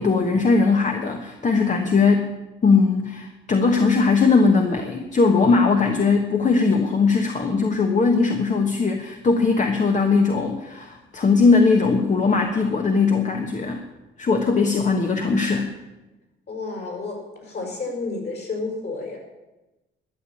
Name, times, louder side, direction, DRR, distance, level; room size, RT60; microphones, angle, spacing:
voice 1, 0.0-2.3 2.6-13.8 14.2-15.7, left 4 dB, 40° left, 4 dB, 1.3 m, -19 dB
voice 2, 16.5-19.2, left 3 dB, 55° left, 0 dB, 5.9 m, -31 dB
12.0 x 6.9 x 10.0 m, 1.0 s
cardioid pair, 90°, 20 cm